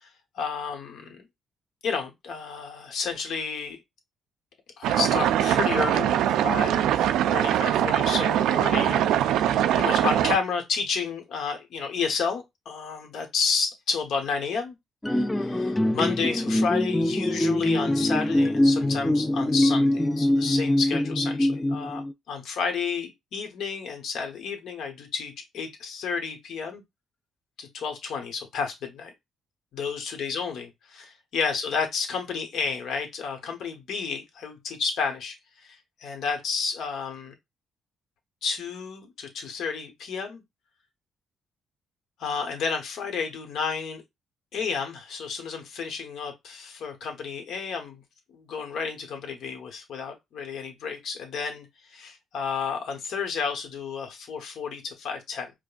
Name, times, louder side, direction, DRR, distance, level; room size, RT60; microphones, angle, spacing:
voice 1, 0.0-1.3 1.8-3.8 4.8-6.2 6.4-14.7 15.1-26.8 27.6-29.1 29.7-37.3 38.4-40.4 42.2-44.0 44.5-48.0 48.3-55.5, left 5 dB, 75° left, 1.2 m, -31 dB
sound 1, 4.8-10.4, right 11 dB, 85° right, 0.3 m, -22 dB
sound 2, 15.0-22.1, left 1 dB, 10° left, 0.3 m, -23 dB
5.1 x 2.1 x 2.5 m
cardioid pair, 90°, 0 cm